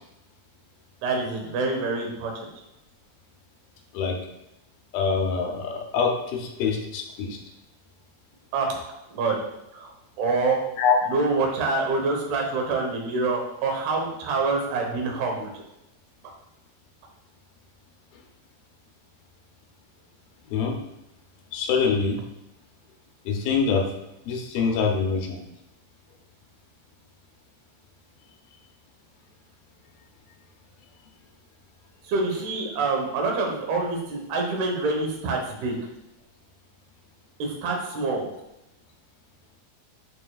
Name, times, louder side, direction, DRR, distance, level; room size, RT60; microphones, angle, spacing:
voice 1, 1.0-2.5 8.5-8.8 9.1-9.4 9.7-10.6 11.0-15.5 24.6-24.8 32.0-35.8 37.4-38.3, right 3 dB, 90° right, 1 dB, 3.3 m, -26 dB
voice 2, 4.9-7.4 10.8-11.0 20.5-20.8 21.5-22.2 23.3-23.9 24.3-25.4, left 5 dB, 75° left, 2 dB, 2.6 m, -24 dB
11.5 x 4.4 x 2.4 m, 0.88 s
omnidirectional pair, 4.4 m